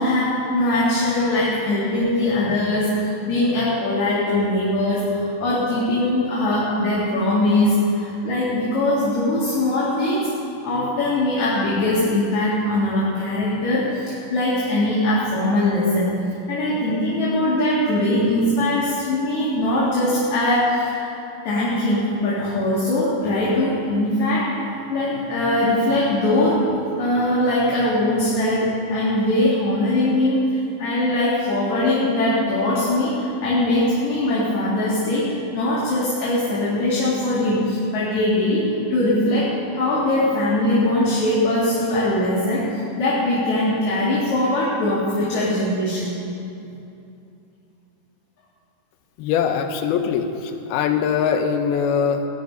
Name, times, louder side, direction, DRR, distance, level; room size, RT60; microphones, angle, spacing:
voice 1, 0.0-10.3 10.6-16.1 16.5-21.2 21.4-26.7 27.0-46.1, left 1 dB, 55° left, -8 dB, 3.3 m, -21 dB
voice 2, 49.2-52.3, left 7 dB, 90° left, 6 dB, 2.8 m, -22 dB
18.5 x 11.0 x 5.4 m, 2.7 s
omnidirectional pair, 4.3 m